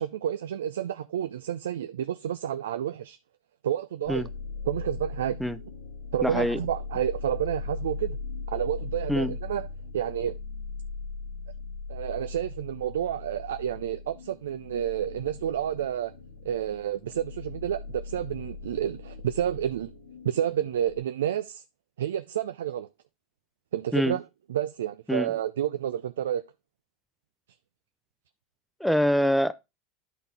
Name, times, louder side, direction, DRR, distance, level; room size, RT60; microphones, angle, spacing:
voice 1, 0.0-3.2 3.6-4.3 4.7-5.4 6.1-8.2 8.5-9.7 9.9-10.4 11.9-16.1 16.4-19.9 20.2-21.6 22.0-22.9 23.7-24.2 24.5-26.4, right 10 dB, 85° right, 0.3 m, -30 dB
sound 1, 4.0-21.0, left 4 dB, 85° left, 1.7 m, -39 dB
voice 2, 6.2-6.6 9.1-9.3 23.9-24.2 25.1-25.3 28.8-29.5, equal, ahead, 0.5 m, -24 dB
11.0 x 4.0 x 3.5 m
hypercardioid pair, 90°, 0 cm